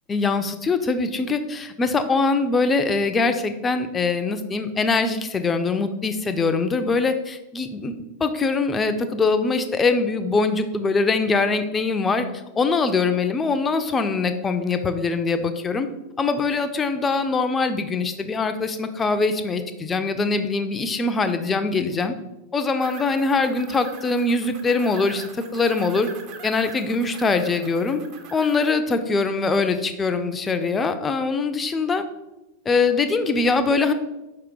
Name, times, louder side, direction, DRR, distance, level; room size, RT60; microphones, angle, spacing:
voice 1, 0.1-7.9 8.2-12.3 12.6-15.9 16.2-22.1 22.5-26.1 26.4-28.0 28.3-32.0 32.7-33.9, left 4 dB, 20° left, 9 dB, 0.4 m, -22 dB
sound 1, 22.8-28.7, right 6 dB, 40° right, 0.5 m, -42 dB
4.7 x 3.4 x 3.1 m, 0.99 s
figure-of-eight pair, 90°, 0 cm